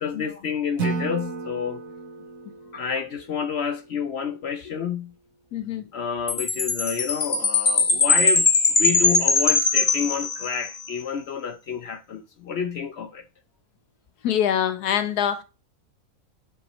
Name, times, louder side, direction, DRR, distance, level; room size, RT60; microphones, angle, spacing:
voice 1, 0.0-1.8 2.7-5.1 5.9-13.2, left 7 dB, 60° left, 0.7 m, -29 dB
Acoustic guitar / Strum, 0.8-3.9, right 4 dB, 65° right, 1.4 m, -33 dB
voice 2, 5.5-5.9 14.2-15.4, left 9 dB, 90° left, 1.4 m, -24 dB
Chime, 6.3-10.8, left 4 dB, 30° left, 1.1 m, -21 dB
7.1 x 6.8 x 3.0 m
omnidirectional pair, 1.6 m